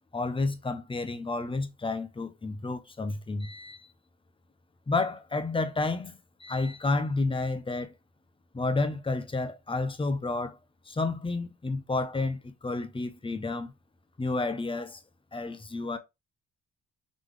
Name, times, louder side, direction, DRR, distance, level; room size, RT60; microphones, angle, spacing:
voice 1, 0.1-3.9 4.9-7.9 8.5-10.6 10.9-13.7 14.2-15.0 15.3-16.0, left 3 dB, 15° left, 0.8 m, -30 dB
4.1 x 3.3 x 3.2 m
cardioid pair, 90°, 30 cm